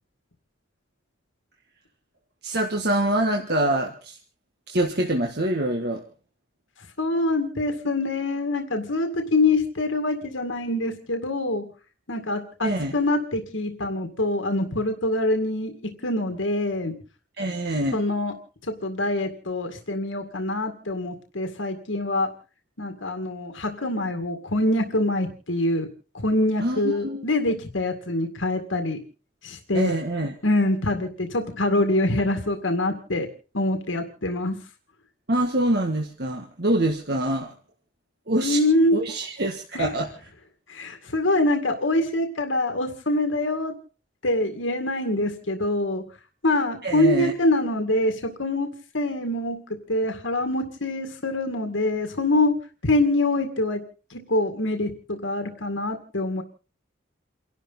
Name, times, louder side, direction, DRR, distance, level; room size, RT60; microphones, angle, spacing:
voice 1, 2.4-4.2 4.7-6.0 12.6-13.0 17.4-18.0 26.6-27.3 29.7-30.3 35.3-37.5 38.3-38.6 38.9-40.1 46.8-47.3, right 1 dB, 55° right, 2 dB, 1.7 m, -25 dB
voice 2, 7.0-11.6 12.1-16.9 17.9-18.3 18.7-22.3 22.8-25.9 26.1-29.0 29.4-29.9 30.4-33.3 33.5-34.6 38.4-39.0 39.7-39.9 40.7-43.7 44.2-46.0 46.4-48.7 48.9-49.6 49.9-53.8 54.1-56.4, left 2 dB, 80° left, 5 dB, 2.0 m, -25 dB
29.5 x 12.0 x 4.0 m, 0.38 s
head